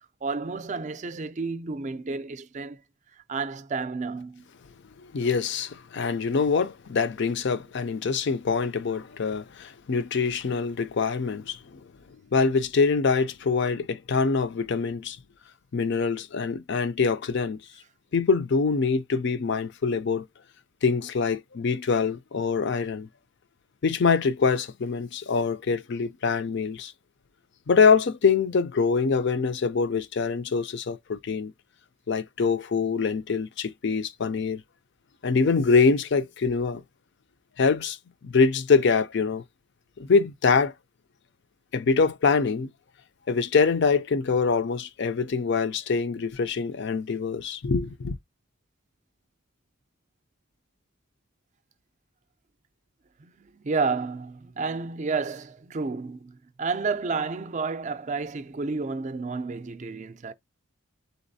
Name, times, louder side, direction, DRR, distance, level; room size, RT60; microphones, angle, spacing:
voice 1, 0.2-2.8 3.3-4.4 53.2-60.3, right 4 dB, 35° right, 0.4 m, -31 dB
voice 2, 5.0-11.8 12.3-15.2 15.7-17.6 18.1-20.3 20.8-23.1 23.8-26.9 27.7-31.5 32.1-34.6 35.2-36.8 37.6-38.0 38.2-39.4 40.0-40.7 41.7-42.7 43.3-48.2, left 5 dB, 55° left, 0.5 m, -24 dB
4.0 x 3.9 x 2.7 m
head